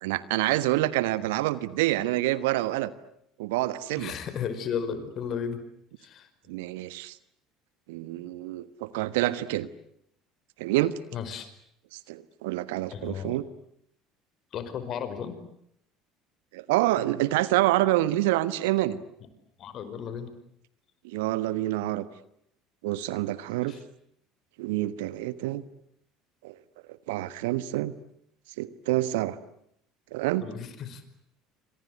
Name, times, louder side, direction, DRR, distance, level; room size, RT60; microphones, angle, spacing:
voice 1, 0.0-2.9 3.4-4.1 6.5-7.2 7.9-9.7 10.6-11.0 11.9-13.4 16.5-19.0 21.0-22.1 22.8-23.7 24.6-25.6 26.4-26.5 27.1-27.9 28.6-29.4 30.1-30.4, right 16 dB, 70° right, 15 dB, 1.3 m, -27 dB
voice 2, 4.0-5.6 6.0-6.3 11.1-11.5 12.9-13.4 14.5-15.4 19.6-20.3 23.7-23.8 30.4-31.0, left 7 dB, 50° left, 11 dB, 5.2 m, -34 dB
28.0 x 26.0 x 8.1 m, 0.74 s
figure-of-eight pair, 65°, 0 cm